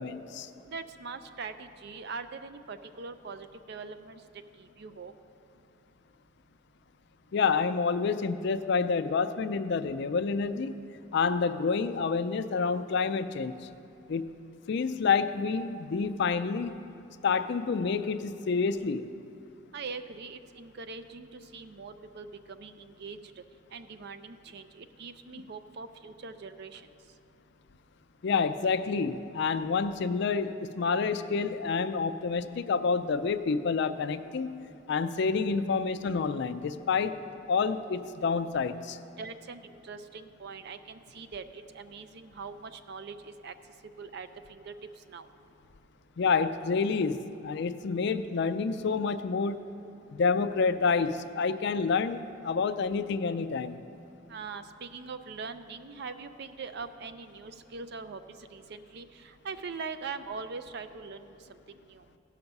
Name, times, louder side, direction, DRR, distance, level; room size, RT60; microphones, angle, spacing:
voice 1, 0.0-0.5 7.3-10.7 11.1-13.7 14.1-14.3 14.7-16.7 17.2-19.1 28.2-34.6 34.9-37.2 37.5-39.0 46.2-49.6 50.1-53.8, left 5 dB, 60° left, 11 dB, 0.4 m, -28 dB
voice 2, 0.7-4.2 4.6-5.1 19.7-23.4 23.7-26.8 39.2-43.5 44.0-44.7 45.1-45.3 54.3-58.2 58.5-61.6 61.9-62.1, right 4 dB, 55° right, 10 dB, 0.5 m, -42 dB
16.5 x 5.8 x 5.3 m, 2.6 s
head